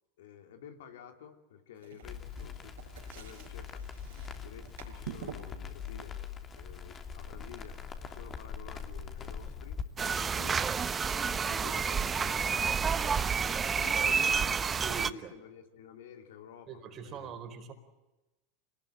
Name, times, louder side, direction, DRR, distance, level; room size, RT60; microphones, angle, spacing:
voice 1, 0.2-2.7 3.0-3.8 4.4-6.2 6.6-10.7 11.2-14.5 15.3-17.3, left 8 dB, 70° left, 6 dB, 3.0 m, -51 dB
sound 1, 1.8-7.9, right 9 dB, 75° right, 5.8 m, -49 dB
Crackle, 2.0-9.8, left 6 dB, 30° left, 3.1 m, -42 dB
sound 2, 10.0-15.1, right 6 dB, 25° right, 1.1 m, -29 dB
voice 2, 14.8-15.4 16.7-17.7, right 6 dB, 40° right, 7 dB, 4.4 m, -42 dB
26.5 x 20.0 x 9.0 m, 1.1 s
hypercardioid pair, 90°, 0 cm